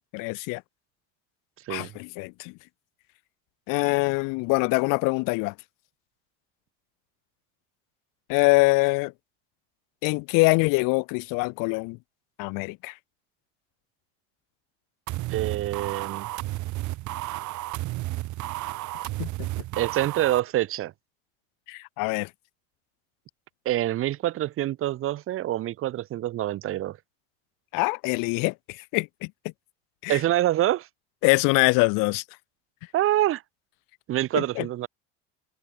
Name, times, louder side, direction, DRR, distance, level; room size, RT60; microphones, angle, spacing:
voice 1, 0.1-0.6 1.7-2.5 3.7-5.5 8.3-9.1 10.0-12.0 12.4-12.9 19.2-19.3 21.7-22.3 27.7-29.3 30.0-30.2 31.2-32.2 34.3-34.7, left 28 dB, 70° left, 3.4 m, -24 dB
sound 1, 15.1-20.4, right 18 dB, 60° right, 5.9 m, -32 dB
voice 2, 15.3-16.3 19.8-20.9 23.6-27.0 30.1-30.9 32.9-33.4 34.1-34.9, right 14 dB, 40° right, 0.8 m, -26 dB
supercardioid pair, 115°, 33 cm